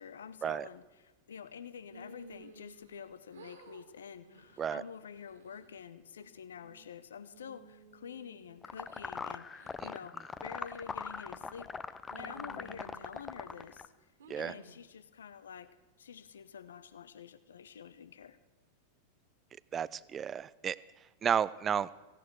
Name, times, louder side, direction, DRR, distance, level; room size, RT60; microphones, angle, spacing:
voice 1, 0.0-11.7 12.1-13.9 14.4-18.4, left 7 dB, 65° left, 15 dB, 0.8 m, -48 dB
sound 1, 1.9-3.1 3.3-3.8 4.2-4.6 5.1-5.7 6.2-6.9 7.3-9.1 9.6-9.7 10.3-10.7 11.3-11.8 12.1-13.7 14.2-14.8, right 2 dB, 65° right, 2.4 m, -55 dB
sound 2, 8.6-13.9, left 5 dB, 15° left, 0.6 m, -41 dB
voice 2, 19.7-20.8 21.2-21.9, right 8 dB, 25° right, 20 dB, 0.5 m, -32 dB
17.0 x 16.5 x 4.7 m, 1.2 s
figure-of-eight pair, 90°, 0 cm